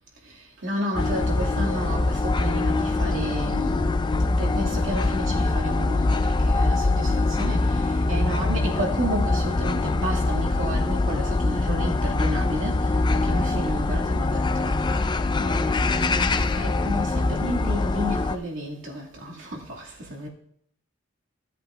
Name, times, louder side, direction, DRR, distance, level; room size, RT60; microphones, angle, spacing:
voice 1, 0.2-4.0 4.2-14.9 15.4-20.3, right 1 dB, 75° right, 2.3 m, -32 dB
sound 1, 0.9-18.4, left 2 dB, 20° left, 0.3 m, -23 dB
16.0 x 8.2 x 2.5 m
head